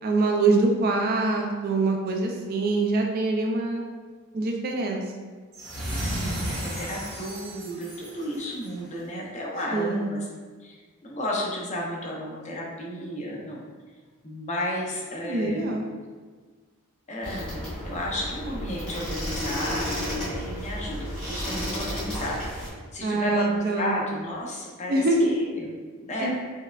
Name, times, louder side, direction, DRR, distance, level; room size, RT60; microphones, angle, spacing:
voice 1, 0.0-3.8 4.3-5.0 9.7-10.1 15.2-15.8 23.0-23.9 24.9-25.3 26.2-26.3, right 3 dB, 45° right, 1 dB, 0.3 m, -24 dB
sound 1, 5.5-8.8, equal, 75° right, 1.3 m, -33 dB
voice 2, 6.0-10.3 10.6-13.6 14.2-15.8 17.1-22.4 22.9-26.3, left 1 dB, 35° left, -3 dB, 0.5 m, -33 dB
sound 2, 17.2-22.7, equal, 5° left, 1.1 m, -32 dB
4.5 x 2.2 x 2.3 m, 1.5 s
head